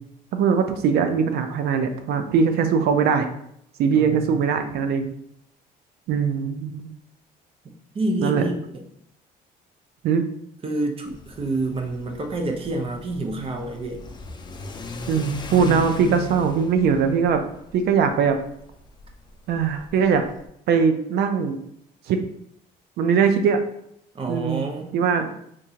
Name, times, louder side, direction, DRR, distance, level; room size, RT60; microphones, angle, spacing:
voice 1, 0.3-3.3 3.8-5.1 6.1-6.9 8.2-8.4 10.0-10.2 15.1-17.4 17.7-18.4 19.5-20.2 20.7-21.6 22.1-22.2 23.0-23.6 24.3-24.7 24.9-25.3, right 6 dB, 70° right, 7 dB, 0.5 m, -21 dB
voice 2, 7.9-8.8 10.6-14.0 24.2-25.0, right 2 dB, 35° right, 3 dB, 0.6 m, -28 dB
Car / Accelerating revving vroom, 11.0-20.5, left 3 dB, 25° left, 0.4 m, -37 dB
3.7 x 2.6 x 2.8 m, 0.73 s
cardioid pair, 110°, 17 cm